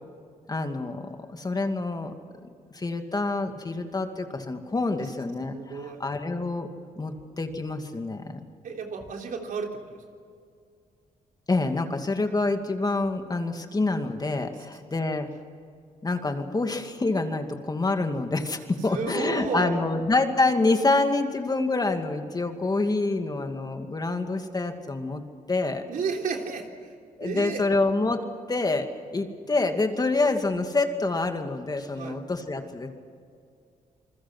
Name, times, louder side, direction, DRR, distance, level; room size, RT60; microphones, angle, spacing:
voice 1, 0.5-2.1 2.7-6.7 7.0-8.5 11.5-15.3 16.0-25.2 25.5-25.8 27.2-28.9 29.1-32.9, left 3 dB, 25° left, 6 dB, 2.4 m, -27 dB
voice 2, 5.5-6.0 8.6-9.8 18.9-19.9 25.9-26.9 27.2-27.6 32.0-32.2, right 5 dB, 70° right, 2 dB, 3.4 m, -32 dB
27.5 x 21.0 x 6.2 m, 2.3 s
cardioid pair, 80°, 15 cm